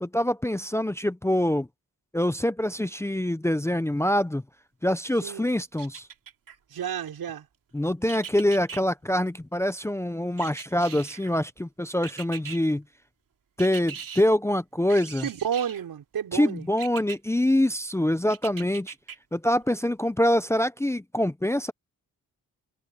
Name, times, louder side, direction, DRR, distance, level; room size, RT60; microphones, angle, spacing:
voice 1, 0.0-1.7 2.1-4.4 4.8-6.1 7.7-12.8 13.6-15.3 16.3-18.9 19.3-21.7, left 1 dB, 10° left, 0.6 m, -25 dB
sound 1, 5.8-6.6 8.1-8.8 10.4-11.3 12.0-12.6 13.6-14.2 14.9-15.9 16.8-17.2 18.3-19.2 19.6-19.7, right 7 dB, 65° right, 2.7 m, -40 dB
voice 2, 6.7-7.5 15.2-16.7, right 9 dB, 90° right, 5.6 m, -31 dB
wide cardioid pair, 145°, 35 cm